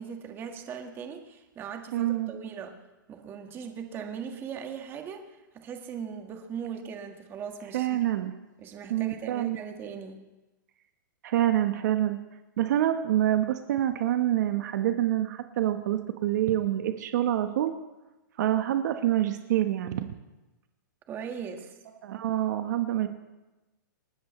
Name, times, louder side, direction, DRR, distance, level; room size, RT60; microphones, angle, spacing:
voice 1, 0.0-2.8 3.1-8.0 8.6-10.2 21.1-21.8, right 7 dB, 20° right, 4 dB, 1.6 m, -39 dB
voice 2, 1.9-2.3 7.7-8.3 8.9-9.6 11.2-12.2 12.6-17.7 18.4-20.1 22.0-23.1, right 12 dB, 60° right, 8 dB, 1.1 m, -26 dB
28.0 x 13.5 x 3.2 m, 1.1 s
hypercardioid pair, 150°, 11 cm